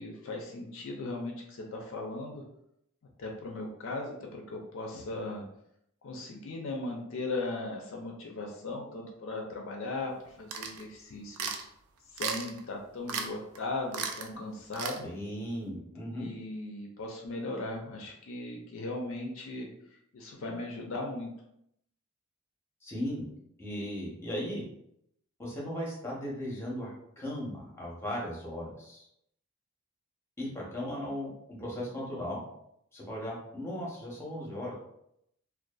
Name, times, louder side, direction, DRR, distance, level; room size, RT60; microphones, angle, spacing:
voice 1, 0.0-2.4 3.2-5.4 6.0-11.5 12.1-15.1 16.1-19.7 20.1-21.3, left 2 dB, 65° left, 1 dB, 0.4 m, -38 dB
sound 1, 10.5-10.8 11.4-11.6 12.2-12.6 13.1-13.3 13.5-13.6 13.9-14.3 14.7-15.0, right 6 dB, 85° right, 0.3 m, -34 dB
voice 2, 15.0-16.3 22.8-23.3 23.6-24.6 25.4-29.1 30.4-32.4 32.9-34.7, equal, 10° left, -4 dB, 0.6 m, -37 dB
2.5 x 2.2 x 2.2 m, 0.76 s
head